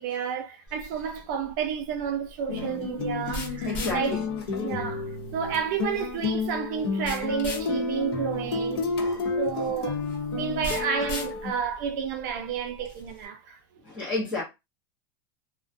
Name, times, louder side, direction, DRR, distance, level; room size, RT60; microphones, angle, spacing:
voice 1, 0.0-4.2 4.6-8.9 9.4-13.6, right 7 dB, 45° right, 0.5 m, -31 dB
sound 1, 0.7-13.3, left 1 dB, 35° left, 1.1 m, -41 dB
sound 2, 2.5-11.5, left 4 dB, 65° left, 0.8 m, -31 dB
voice 2, 3.6-4.2 9.0-9.3 13.8-14.4, left 2 dB, 10° left, 0.5 m, -31 dB
2.4 x 2.1 x 2.5 m
supercardioid pair, 175°, 14 cm